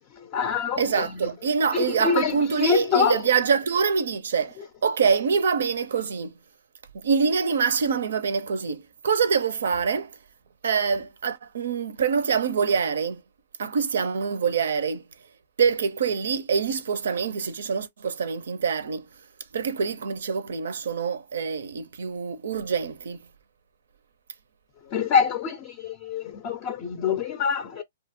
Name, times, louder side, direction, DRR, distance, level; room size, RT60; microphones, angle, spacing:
voice 1, 0.1-1.3 1.7-3.2 24.9-27.8, left 7 dB, 30° left, 0.4 m, -25 dB
voice 2, 0.8-4.6 4.8-6.3 6.9-10.1 10.6-13.2 13.6-15.0 15.6-19.1 19.5-23.2, right 6 dB, 80° right, 0.6 m, -25 dB
2.7 x 2.4 x 2.8 m
hypercardioid pair, 155°, 0 cm